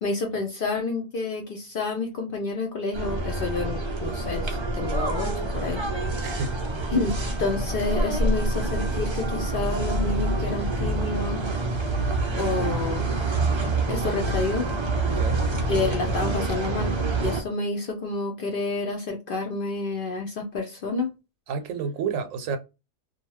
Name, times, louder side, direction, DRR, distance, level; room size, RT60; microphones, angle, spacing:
voice 1, 0.0-5.8 6.9-11.5 12.3-13.1 13.9-14.7 15.7-16.9 17.2-21.1, left 3 dB, 60° left, 0.6 m, -29 dB
sound 1, 2.9-17.4, right 2 dB, 40° right, 0.4 m, -26 dB
voice 2, 6.2-6.6 15.1-15.4 21.5-22.6, right 5 dB, 80° right, 1.0 m, -30 dB
2.6 x 2.2 x 3.0 m
omnidirectional pair, 1.4 m